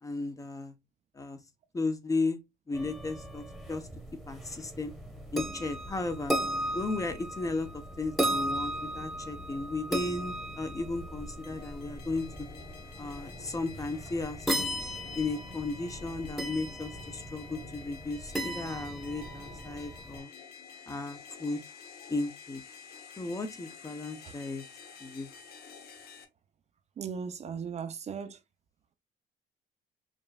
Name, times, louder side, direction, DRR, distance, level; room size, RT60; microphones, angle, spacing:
voice 1, 0.0-0.7 1.1-1.4 1.7-2.4 2.7-3.9 4.3-4.9 5.3-6.4 6.7-12.5 13.0-14.7 15.1-20.3 20.9-21.6 22.1-22.6 23.2-24.6 25.0-25.3, left 3 dB, 20° left, 0.8 m, -35 dB
sound 1, 2.7-20.2, equal, ahead, 1.2 m, -37 dB
sound 2, 11.4-26.2, left 6 dB, 70° left, 1.1 m, -50 dB
voice 2, 27.0-28.4, right 6 dB, 40° right, 0.6 m, -37 dB
5.1 x 3.1 x 2.3 m
cardioid pair, 110°, 17 cm